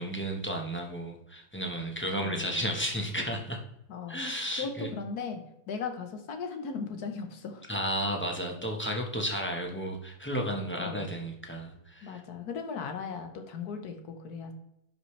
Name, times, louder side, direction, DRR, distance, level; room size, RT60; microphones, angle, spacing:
voice 1, 0.0-3.6 4.1-4.9 7.7-12.2, equal, 10° left, 1 dB, 1.1 m, -33 dB
voice 2, 2.2-2.6 3.9-4.2 4.6-5.4 5.7-7.7 10.8-11.2 12.0-14.5, left 5 dB, 85° left, 6 dB, 1.6 m, -37 dB
11.5 x 5.3 x 3.3 m, 0.80 s
omnidirectional pair, 1.6 m